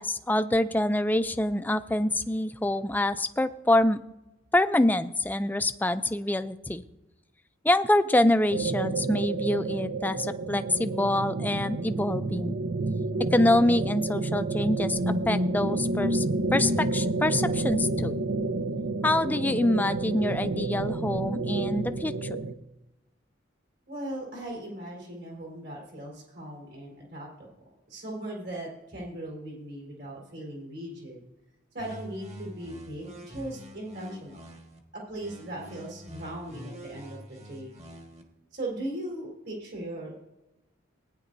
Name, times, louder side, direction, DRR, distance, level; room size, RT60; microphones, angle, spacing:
voice 1, 0.0-4.0 4.5-6.8 7.6-12.6 13.2-16.2 16.5-18.2 19.0-22.5, left 1 dB, 10° left, 12 dB, 0.3 m, -26 dB
sound 1, 8.5-22.5, right 2 dB, 85° right, 0.8 m, -29 dB
voice 2, 23.9-27.5 27.9-31.2 31.7-34.4 34.9-37.8 38.5-40.2, right 1 dB, 55° right, -1 dB, 4.0 m, -38 dB
sound 2, 31.8-34.8 35.2-38.2, equal, 35° right, 1.5 m, -45 dB
18.5 x 9.9 x 2.6 m, 0.98 s
head